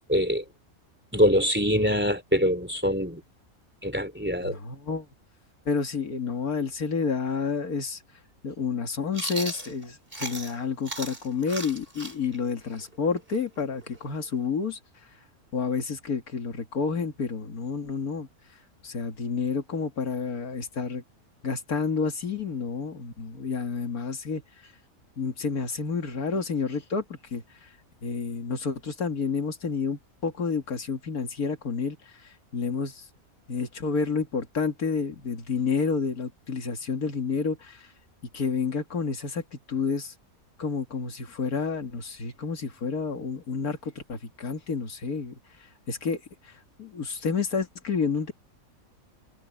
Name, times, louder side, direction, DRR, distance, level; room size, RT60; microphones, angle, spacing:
voice 1, 0.1-0.4 1.1-3.2 3.8-4.6, equal, 5° right, 3.6 m, -24 dB
voice 2, 4.4-5.1 5.7-8.0 8.4-14.8 15.5-18.3 18.8-21.0 21.4-24.7 25.2-27.7 28.0-33.1 33.5-37.9 38.3-40.1 40.6-45.4 45.9-48.3, left 5 dB, 85° left, 2.6 m, -30 dB
Chewing mastication, 9.1-10.6 10.8-14.5, right 2 dB, 40° right, 4.4 m, -37 dB
omnidirectional pair, 1.5 m